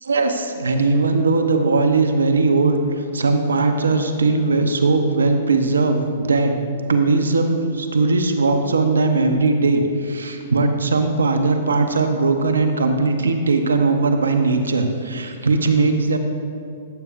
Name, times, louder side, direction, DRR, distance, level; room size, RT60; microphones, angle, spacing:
voice 1, 0.0-6.5 6.9-16.2, right 3 dB, 85° right, 6 dB, 0.8 m, -19 dB
14.0 x 8.2 x 2.6 m, 2.5 s
hypercardioid pair, 120°, 0 cm